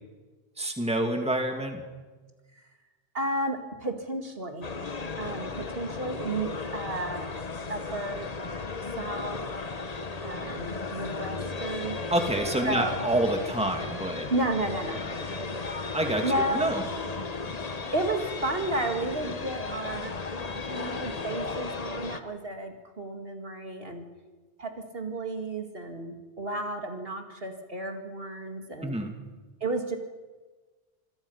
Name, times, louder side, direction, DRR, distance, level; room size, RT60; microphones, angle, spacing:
voice 1, 0.6-1.8 12.1-14.3 15.9-16.2 16.5-16.8 28.8-29.1, right 1 dB, 5° right, 3 dB, 2.3 m, -27 dB
voice 2, 3.1-4.7 5.2-7.3 7.7-8.3 9.0-9.4 10.2-12.0 12.6-13.0 14.3-15.4 16.2-16.7 17.1-17.2 17.9-20.1 20.6-24.1 24.6-29.0 29.6-30.0, right 2 dB, 55° right, 4 dB, 2.5 m, -32 dB
sound 1, 4.6-22.2, left 4 dB, 35° left, 1.2 m, -35 dB
27.5 x 21.0 x 5.7 m, 1.3 s
omnidirectional pair, 1.2 m